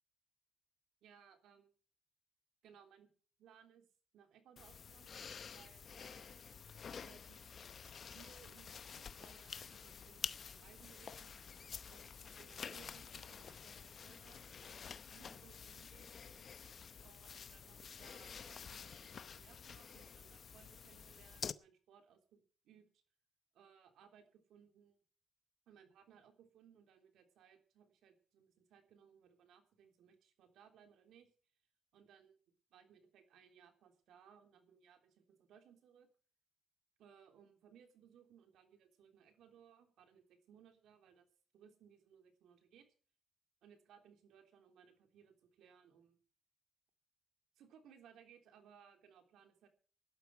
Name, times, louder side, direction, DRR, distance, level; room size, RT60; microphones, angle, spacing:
voice 1, 1.0-1.7 2.6-3.1 3.4-3.9 4.1-6.3 7.0-7.4 8.1-11.4 11.9-16.2 17.0-23.0 23.5-25.0 25.7-31.3 31.9-32.4 32.7-36.1 37.0-41.3 41.5-42.9 43.6-46.2 47.5-49.7, right 8 dB, 80° right, 6 dB, 3.4 m, -64 dB
sound 1, 4.6-21.5, left 6 dB, 50° left, 0.7 m, -50 dB
17.0 x 12.0 x 4.8 m, 0.40 s
cardioid pair, 90°, 0 cm